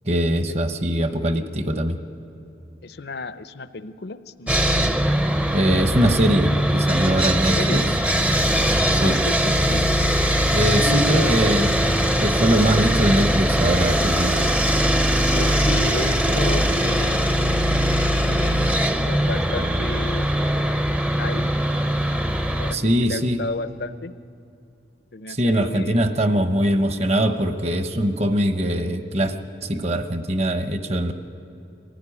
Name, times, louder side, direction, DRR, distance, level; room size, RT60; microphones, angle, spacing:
voice 1, 0.0-2.0 5.5-7.8 8.9-9.2 10.5-11.7 12.2-14.4 22.7-23.4 25.3-29.3 29.6-31.1, right 1 dB, 35° right, 8 dB, 1.0 m, -22 dB
voice 2, 2.8-4.9 7.1-7.9 9.0-10.0 10.6-11.4 15.2-17.4 17.9-20.3 21.2-21.4 22.6-24.1 25.1-26.0, left 3 dB, 65° left, 13 dB, 0.7 m, -33 dB
Sawing, 4.5-22.7, equal, 5° right, 0.6 m, -21 dB
23.5 x 15.5 x 10.0 m, 2.8 s
head